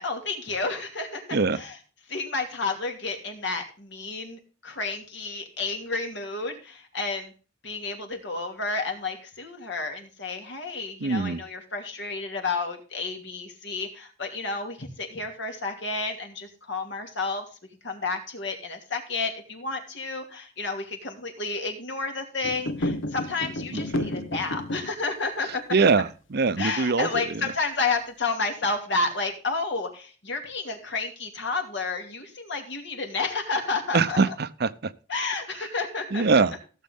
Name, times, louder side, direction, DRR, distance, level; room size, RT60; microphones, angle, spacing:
voice 1, 0.0-1.8 2.1-7.3 7.6-17.4 17.8-25.6 26.6-34.3 35.1-36.4, left 3 dB, 65° left, 2.7 m, -31 dB
voice 2, 11.0-11.4 23.9-24.1 25.7-27.5 33.9-34.7 36.1-36.6, right 4 dB, 55° right, 0.7 m, -23 dB
sound 1, 22.4-25.0, left 1 dB, 80° left, 1.0 m, -31 dB
16.0 x 7.4 x 3.7 m
head